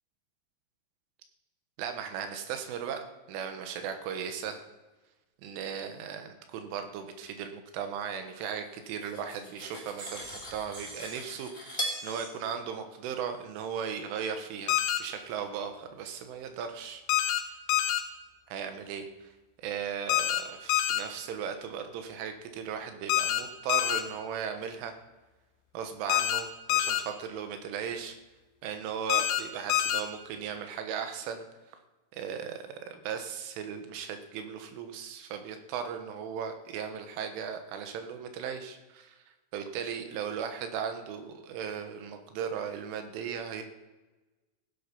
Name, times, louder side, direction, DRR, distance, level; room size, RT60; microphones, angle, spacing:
voice 1, 1.8-3.0 3.3-4.6 5.4-10.2 10.5-17.0 18.5-19.3 19.6-24.9 25.7-28.2 28.6-31.5 32.1-39.2 39.5-43.6, right 7 dB, 85° right, 7 dB, 3.7 m, -37 dB
Cutlery silverware, 8.8-12.0, equal, 5° left, 3.0 m, -39 dB
sound 1, 10.0-10.5 10.7-11.2 11.9-12.3, right 3 dB, 65° right, 5.2 m, -45 dB
sound 2, 14.7-15.0 17.1-17.4 17.7-18.0 20.1-20.4 20.7-21.0 23.1-23.4 23.7-24.0 26.1-26.4 26.7-27.0 29.1-29.4 29.7-30.0, left 13 dB, 80° left, 3.3 m, -26 dB
16.5 x 10.0 x 5.4 m, 1.2 s
omnidirectional pair, 5.5 m